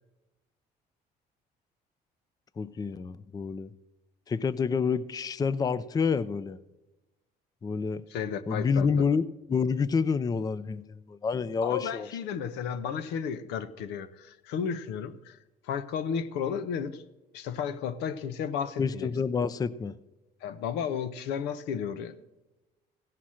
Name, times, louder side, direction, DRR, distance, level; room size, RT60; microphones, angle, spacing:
voice 1, 2.6-3.7 4.3-6.6 7.6-8.0 8.5-12.1 18.8-19.9, left 5 dB, 20° left, 0.4 m, -28 dB
voice 2, 8.1-8.9 11.6-15.4 15.6-17.0 17.3-19.1 20.4-22.2, left 7 dB, 90° left, 0.7 m, -33 dB
16.5 x 5.8 x 6.3 m
cardioid pair, 110°, 17 cm